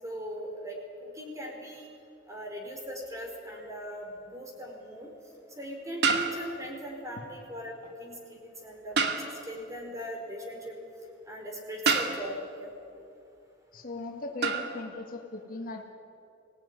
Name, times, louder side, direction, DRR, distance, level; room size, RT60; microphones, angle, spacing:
voice 1, 0.0-1.9 2.3-5.1 5.6-7.7 8.0-9.1 9.4-10.8 11.3-12.7, equal, 20° right, 0 dB, 4.9 m, -39 dB
sound 1, 3.6-3.7 6.0-6.8 9.0-9.6 11.9-12.5 14.4-14.8, right 5 dB, 65° right, 2.1 m, -28 dB
voice 2, 13.7-15.9, left 2 dB, 50° left, 2 dB, 2.1 m, -38 dB
24.0 x 18.0 x 9.9 m, 2.7 s
head